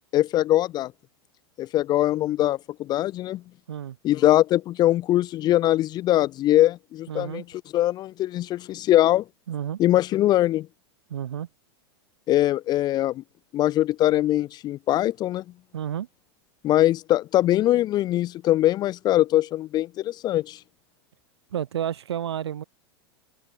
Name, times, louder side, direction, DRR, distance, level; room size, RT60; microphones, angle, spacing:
voice 1, 0.1-0.9 1.6-3.4 4.0-7.4 7.7-9.2 9.8-10.7 12.3-13.2 13.5-15.4 16.6-20.6, left 14 dB, 30° left, 0.3 m, -22 dB
voice 2, 7.1-7.4 9.5-9.8 11.1-11.5 15.7-16.1 21.5-22.6, right 10 dB, 80° right, 1.7 m, -30 dB
hypercardioid pair, 95°, 14 cm